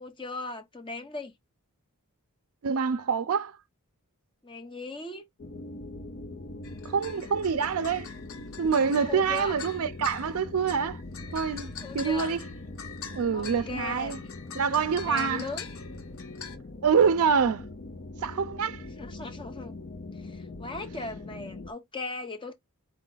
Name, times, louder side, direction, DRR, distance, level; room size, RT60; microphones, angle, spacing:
voice 1, 0.0-1.3 4.4-5.2 9.0-9.6 11.8-12.3 13.3-14.1 15.0-15.7 18.8-19.8 20.1-22.5, left 3 dB, 20° left, 1.0 m, -38 dB
voice 2, 2.6-3.6 6.8-8.1 8.6-11.0 11.3-12.4 13.1-14.2 14.6-15.4 16.8-17.7 18.2-18.8, right 6 dB, 70° right, 0.4 m, -26 dB
sound 1, 5.4-21.7, left 2 dB, 40° left, 0.6 m, -42 dB
sound 2, 6.6-16.6, left 6 dB, 65° left, 0.8 m, -44 dB
4.7 x 2.4 x 3.8 m
head